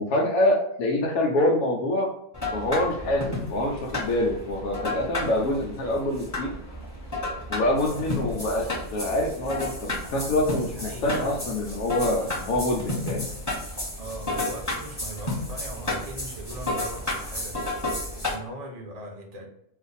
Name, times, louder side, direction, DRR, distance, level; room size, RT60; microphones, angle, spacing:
voice 1, 0.0-2.1 2.5-6.5 7.5-13.3, left 1 dB, 85° left, -2 dB, 1.1 m, -25 dB
sound 1, 2.3-18.3, left 2 dB, 15° left, 1.2 m, -32 dB
voice 2, 10.8-11.4 14.0-19.5, right 1 dB, 40° right, 1 dB, 0.6 m, -40 dB
2.5 x 2.5 x 4.0 m, 0.74 s
omnidirectional pair, 1.5 m